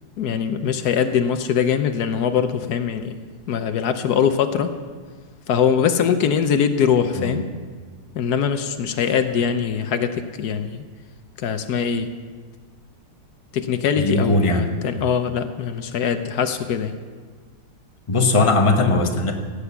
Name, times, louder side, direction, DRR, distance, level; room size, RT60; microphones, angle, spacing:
voice 1, 0.2-3.2 3.5-4.8 5.5-7.5 8.1-10.8 11.4-12.2 13.5-17.0, left 7 dB, 75° left, 9 dB, 1.3 m, -22 dB
voice 2, 14.0-14.6 18.1-19.3, left 2 dB, 20° left, 3 dB, 1.1 m, -19 dB
16.5 x 8.5 x 7.0 m, 1.5 s
omnidirectional pair, 1.7 m